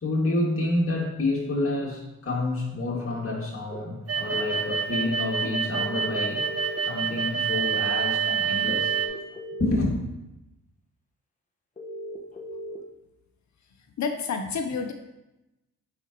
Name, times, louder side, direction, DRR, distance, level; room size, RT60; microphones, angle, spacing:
voice 1, 0.0-6.4 6.8-9.0 9.6-9.9, left 2 dB, 40° left, -3 dB, 2.2 m, -28 dB
sound 1, 3.7-3.8 5.8-7.0 8.8-9.8 11.8-12.8, equal, 25° left, 1.3 m, -38 dB
sound 2, 4.1-9.1, right 6 dB, 45° right, 1.1 m, -27 dB
voice 2, 14.0-14.9, left 5 dB, 55° left, 6 dB, 0.8 m, -29 dB
8.9 x 5.1 x 3.0 m, 0.97 s
supercardioid pair, 55°, 33 cm